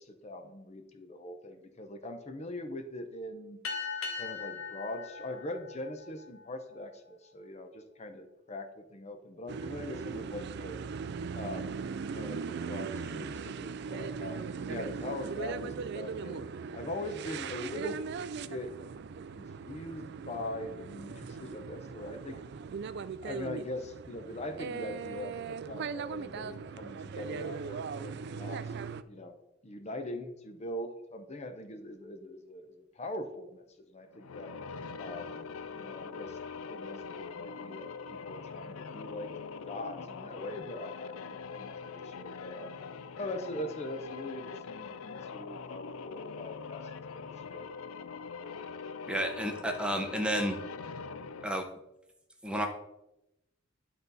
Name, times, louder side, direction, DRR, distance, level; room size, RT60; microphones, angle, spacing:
voice 1, 0.0-3.6 4.1-10.8 11.3-11.8 12.1-16.4 16.7-18.0 18.5-18.7 19.3-22.4 23.2-28.7 29.1-29.4 29.6-34.5 35.0-36.4 36.7-39.3 39.6-42.8 43.1-47.7, left 1 dB, 30° left, 7 dB, 0.6 m, -42 dB
sound 1, 3.6-6.6, left 5 dB, 70° left, 1.2 m, -39 dB
sound 2, 9.5-29.0, right 5 dB, 55° right, 0.3 m, -39 dB
sound 3, 34.1-51.6, left 5 dB, 90° left, 0.5 m, -43 dB
voice 2, 49.1-50.6 51.4-51.6 52.4-52.7, right 1 dB, 5° right, 4 dB, 0.7 m, -31 dB
11.0 x 4.0 x 4.0 m, 0.91 s
head